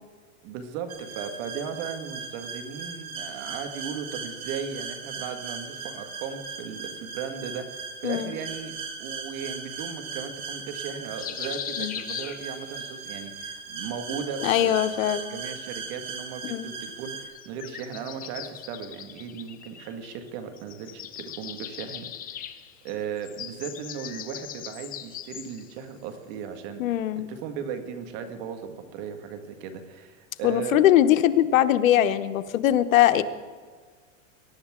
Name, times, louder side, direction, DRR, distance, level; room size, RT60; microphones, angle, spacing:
voice 1, 0.4-15.0 15.3-22.1 22.4-22.5 22.8-27.0 27.3-30.8, right 7 dB, 50° right, 7 dB, 1.9 m, -37 dB
sound 1, 0.9-17.3, right 5 dB, 85° right, 3.9 m, -38 dB
sound 2, 11.2-12.9 14.3-15.4 17.3-20.3 20.6-25.7, left 10 dB, 20° left, 0.7 m, -40 dB
voice 2, 14.4-15.2 16.4-16.7 26.8-27.3 30.4-33.2, left 12 dB, 85° left, 12 dB, 1.0 m, -21 dB
21.5 x 11.5 x 3.7 m, 1.5 s
supercardioid pair, 140°, 39 cm